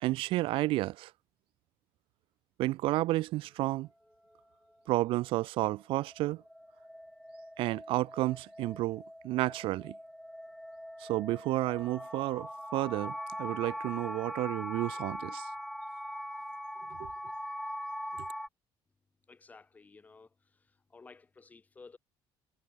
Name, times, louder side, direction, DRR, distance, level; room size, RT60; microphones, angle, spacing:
voice 1, 0.0-1.1 2.6-3.9 4.9-6.4 7.6-9.9 11.0-15.5 17.0-17.1, right 17 dB, 70° right, 1.2 m, -31 dB
sound 1, 5.7-18.5, equal, ahead, 1.2 m, -42 dB
voice 2, 19.3-22.0, left 4 dB, 15° left, 3.0 m, -55 dB
cardioid pair, 165°, 9 cm